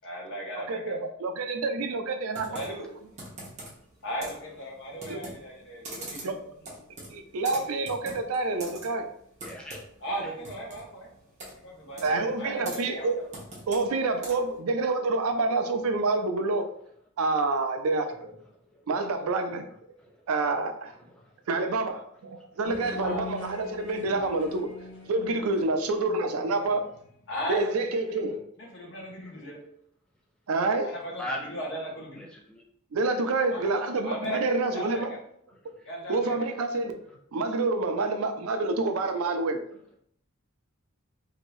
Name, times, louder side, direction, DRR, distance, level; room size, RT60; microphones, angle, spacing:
voice 1, 0.0-1.0 2.5-2.9 4.0-6.3 6.6-6.8 10.0-11.1 11.6-13.4 23.0-23.3 27.3-29.6 30.8-32.3 33.5-33.7 34.0-35.2 35.8-36.5, equal, 55° left, -1 dB, 0.9 m, -37 dB
voice 2, 0.7-2.6 5.1-5.3 6.2-6.5 7.1-9.0 12.0-13.1 13.7-16.6 17.2-18.4 18.9-19.6 20.3-20.9 21.5-24.7 25.1-26.8 27.5-28.4 30.5-30.9 32.9-35.1 36.1-37.0 37.3-39.6, right 3 dB, 80° right, 6 dB, 0.4 m, -27 dB
Computer keyboard, 2.3-14.6, right 1 dB, 30° right, 0.9 m, -44 dB
voice 3, 9.4-9.8 11.4-11.5 18.7-18.8 20.0-20.2 21.0-21.2 29.3-29.4 31.1-31.5 32.2-32.6, left 1 dB, 5° left, -2 dB, 0.3 m, -38 dB
sound 1, 22.6-27.5, left 3 dB, 80° left, 1.1 m, -43 dB
2.8 x 2.6 x 3.0 m, 0.67 s
head